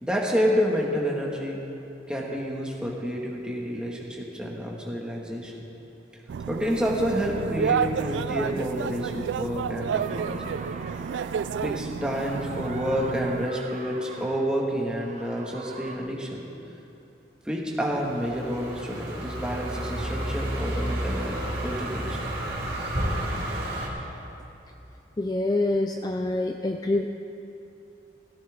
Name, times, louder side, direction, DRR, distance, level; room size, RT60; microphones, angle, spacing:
voice 1, 0.0-1.6 2.1-5.6 6.5-10.5 11.6-16.4 17.4-22.2, equal, 5° right, -3 dB, 1.7 m, -29 dB
sound 1, 6.3-13.5, right 7 dB, 85° right, 0.3 m, -30 dB
sound 2, 9.9-16.0, right 3 dB, 40° right, 0.7 m, -42 dB
Car passing by, 17.8-23.9, right 1 dB, 60° right, 3.1 m, -31 dB
voice 2, 25.2-27.1, left 2 dB, 20° left, 5 dB, 0.4 m, -26 dB
18.0 x 16.0 x 3.6 m, 2.9 s
head